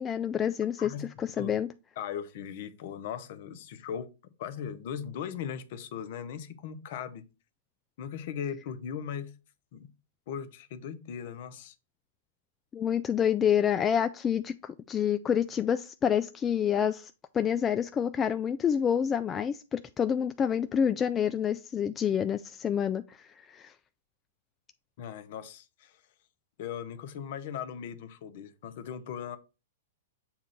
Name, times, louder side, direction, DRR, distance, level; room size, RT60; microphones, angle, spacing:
voice 1, 0.0-1.7 12.7-23.7, left 8 dB, 20° left, 0.3 m, -28 dB
voice 2, 2.0-4.1 4.4-7.3 8.0-9.3 9.7-9.9 10.3-11.7 25.0-26.0 26.6-29.4, left 8 dB, 55° left, 0.7 m, -38 dB
7.1 x 2.5 x 5.5 m
hypercardioid pair, 115°, 0 cm